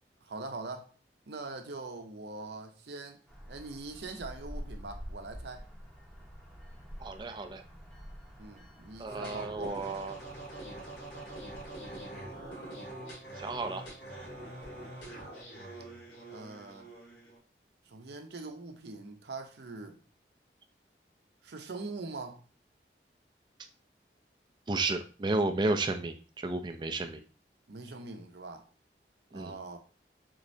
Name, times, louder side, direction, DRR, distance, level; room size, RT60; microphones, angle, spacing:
voice 1, 0.2-0.9 1.3-3.2 3.5-5.7 8.4-10.0 16.3-16.9 17.9-20.0 21.4-22.4 27.7-28.7 29.3-29.8, right 3 dB, 70° right, 0.6 m, -42 dB
sound 1, 3.3-12.5, equal, 5° left, 0.7 m, -48 dB
voice 2, 7.0-7.6 9.0-10.1 13.4-13.8 24.7-27.2 29.3-29.5, right 2 dB, 25° right, 0.4 m, -32 dB
sound 2, 9.1-17.4, right 1 dB, 80° left, 1.8 m, -44 dB
3.8 x 3.2 x 2.6 m
head